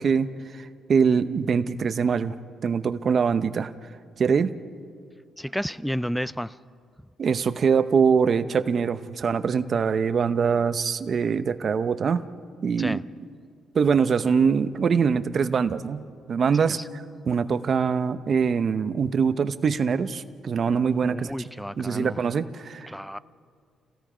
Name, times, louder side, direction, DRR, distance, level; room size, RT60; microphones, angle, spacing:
voice 1, 0.0-2.3 2.6-3.7 4.2-4.5 7.2-12.2 12.6-13.0 13.7-21.3 21.8-22.9, right 6 dB, 50° right, 12 dB, 0.9 m, -23 dB
voice 2, 5.4-6.6 12.8-13.0 21.0-22.2 22.9-23.2, equal, ahead, 18 dB, 0.5 m, -31 dB
29.0 x 17.5 x 5.1 m, 2.1 s
cardioid pair, 90°, 0 cm